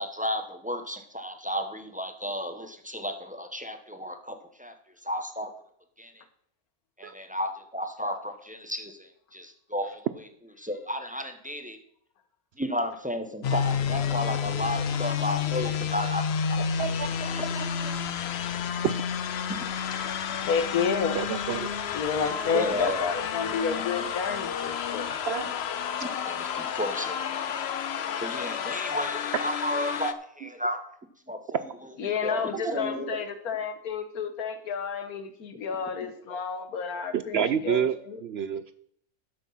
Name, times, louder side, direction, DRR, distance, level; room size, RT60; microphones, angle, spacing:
voice 1, 0.0-4.7 5.0-5.5 6.0-6.1 7.0-10.3 10.6-11.8 12.6-17.9 22.5-23.1 26.0-27.7 28.2-30.8 31.3-33.2 36.3-36.4 36.9-37.0, equal, 5° right, 6 dB, 0.8 m, -33 dB
sound 1, 13.4-30.1, left 7 dB, 55° left, 0.8 m, -30 dB
voice 2, 16.8-17.3 17.6-17.7 18.8-19.0 21.1-21.7 25.3-25.5 32.6-32.7 37.1-38.0 38.2-38.7, right 8 dB, 70° right, 12 dB, 0.6 m, -28 dB
voice 3, 20.5-21.2 21.9-25.2 32.0-38.2, left 5 dB, 80° left, 10 dB, 1.6 m, -30 dB
12.5 x 6.1 x 5.5 m, 0.66 s
omnidirectional pair, 1.5 m